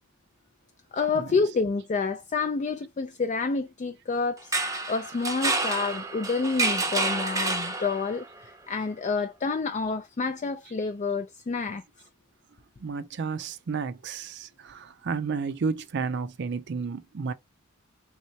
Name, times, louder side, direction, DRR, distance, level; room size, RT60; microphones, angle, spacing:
voice 1, 0.9-11.8, left 4 dB, 35° left, 0.4 m, -29 dB
sound 1, 4.4-8.3, right 3 dB, 15° right, 0.7 m, -29 dB
voice 2, 12.8-17.3, right 5 dB, 60° right, 0.4 m, -32 dB
3.6 x 3.1 x 2.7 m
head